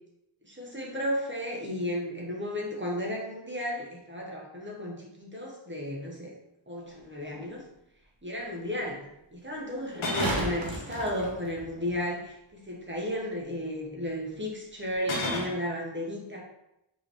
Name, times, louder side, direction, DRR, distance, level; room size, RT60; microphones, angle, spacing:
voice 1, 0.4-6.3 6.7-7.6 8.2-9.1 9.3-16.4, equal, 25° right, -3 dB, 0.9 m, -34 dB
sound 1, 6.9-7.0 7.3-7.5 9.9-10.4 11.7-12.1 15.0-15.6, left 2 dB, 85° left, 0.9 m, -33 dB
sound 2, 7.0-7.1 9.8-12.0 14.8-14.9, right 1 dB, 65° right, 1.2 m, -34 dB
4.7 x 3.0 x 3.4 m, 0.87 s
wide cardioid pair, 95°, 47 cm